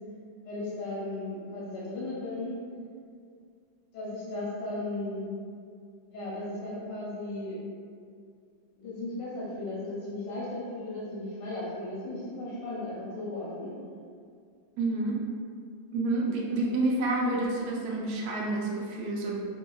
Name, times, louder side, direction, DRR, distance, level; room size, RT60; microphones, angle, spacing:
voice 1, 0.4-2.6 3.9-5.3 6.1-7.6 8.8-13.7, left 2 dB, 70° left, -8 dB, 1.2 m, -36 dB
voice 2, 14.8-15.2 15.9-19.5, right 2 dB, 90° right, -3 dB, 0.8 m, -29 dB
2.8 x 2.7 x 2.2 m, 2.2 s
omnidirectional pair, 2.2 m